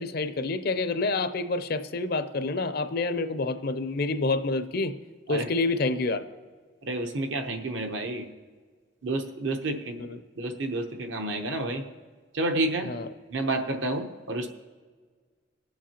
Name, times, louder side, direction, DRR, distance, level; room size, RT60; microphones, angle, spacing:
voice 1, 0.0-4.9 5.3-6.2 10.1-10.2 12.9-13.1, left 3 dB, 50° left, 10 dB, 0.5 m, -28 dB
voice 2, 6.8-8.3 9.0-10.0 10.4-11.8 12.3-12.9 13.3-14.5, right 2 dB, 65° right, 5 dB, 0.9 m, -30 dB
21.5 x 7.3 x 2.9 m, 1.5 s
head